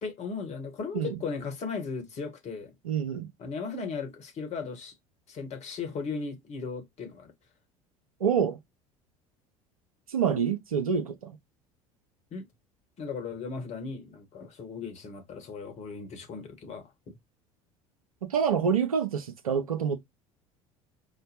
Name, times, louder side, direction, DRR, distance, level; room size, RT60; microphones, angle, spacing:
voice 1, 0.0-2.7 3.4-4.9 5.3-7.3 12.3-12.4 13.0-17.2, left 5 dB, 40° left, 1.2 m, -37 dB
voice 2, 2.8-3.3 8.2-8.6 10.1-11.3 18.2-20.0, right 7 dB, 80° right, 0.6 m, -27 dB
5.1 x 2.1 x 2.7 m
figure-of-eight pair, 65°, 18 cm